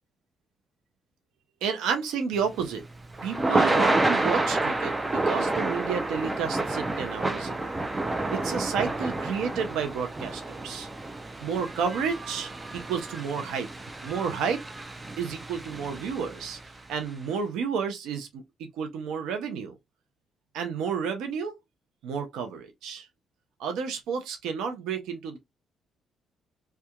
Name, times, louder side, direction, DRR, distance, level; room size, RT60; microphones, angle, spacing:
voice 1, 1.6-2.8 3.2-7.7 8.3-10.9 11.4-13.7 14.0-14.6 15.2-18.4 18.7-19.7 20.5-21.6 22.0-23.1 23.6-25.4, right 6 dB, 90° right, 0.5 m, -31 dB
Thunder / Rain, 2.4-16.7, right 2 dB, 20° right, 0.4 m, -29 dB
2.8 x 2.2 x 2.2 m
cardioid pair, 90°, 0 cm